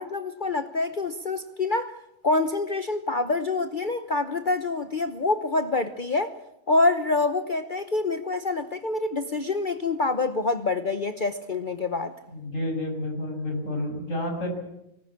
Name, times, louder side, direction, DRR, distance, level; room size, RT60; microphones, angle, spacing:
voice 1, 0.0-2.0 2.2-6.3 6.7-12.1, left 3 dB, 40° left, 9 dB, 1.1 m, -26 dB
voice 2, 12.3-14.6, left 1 dB, 65° left, 3 dB, 7.1 m, -30 dB
23.5 x 19.5 x 8.6 m, 0.82 s
omnidirectional pair, 1.4 m